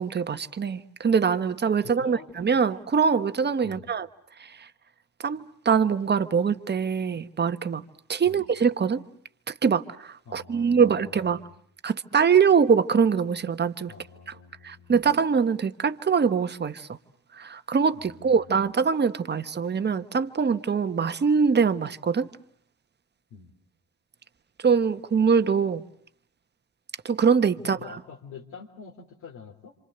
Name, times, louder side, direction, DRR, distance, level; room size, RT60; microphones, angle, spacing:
voice 1, 0.0-4.1 5.2-7.8 8.1-9.0 9.5-11.4 11.8-13.9 14.6-16.9 17.3-22.3 24.6-25.8 27.0-27.8, right 6 dB, 35° right, 1.3 m, -23 dB
voice 2, 1.8-2.3 3.6-3.9 8.2-8.4 10.2-11.6 13.9-15.0 17.9-18.7 23.3-23.5 27.6-29.7, left 5 dB, 75° left, 3.5 m, -46 dB
27.0 x 27.0 x 8.0 m
cardioid pair, 90°, 30 cm